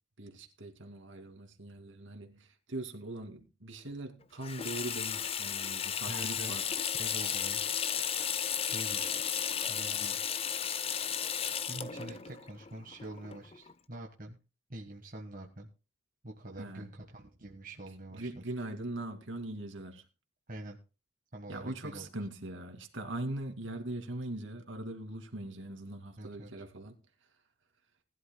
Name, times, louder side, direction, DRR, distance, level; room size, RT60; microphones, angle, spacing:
voice 1, 0.2-6.7 16.6-16.9 17.4-17.5 18.1-20.0 21.5-26.9, right 1 dB, 65° right, 2.4 m, -41 dB
Water tap faucet / Sink (filling or washing), 4.4-13.7, left 8 dB, 30° left, 0.5 m, -34 dB
voice 2, 6.1-7.6 8.3-9.2 9.7-10.2 11.7-14.4 14.7-15.7 16.2-18.4 20.5-20.8 21.3-22.1 26.2-26.5, right 1 dB, 40° right, 1.4 m, -45 dB
20.0 x 11.5 x 2.2 m
head